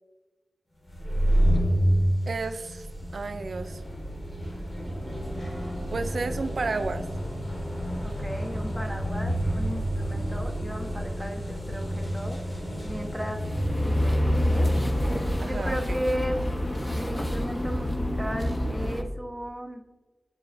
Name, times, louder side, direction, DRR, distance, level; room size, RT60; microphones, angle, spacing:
sound 1, 0.9-18.3, equal, 50° left, 1.9 m, -30 dB
voice 1, 2.3-2.9 3.1-3.8 5.9-7.1 15.4-16.0, right 3 dB, 75° right, 9 dB, 0.3 m, -32 dB
sound 2, 4.7-9.8, right 1 dB, 25° right, 0.9 m, -44 dB
voice 2, 8.0-12.4 12.8-13.4 13.8-14.7 15.4-16.4 16.9-19.8, right 1 dB, 5° left, 2 dB, 1.1 m, -35 dB
sound 3, 13.2-19.0, left 1 dB, 30° left, 0.9 m, -27 dB
8.5 x 4.7 x 2.6 m, 1.2 s
cardioid pair, 45°, 0 cm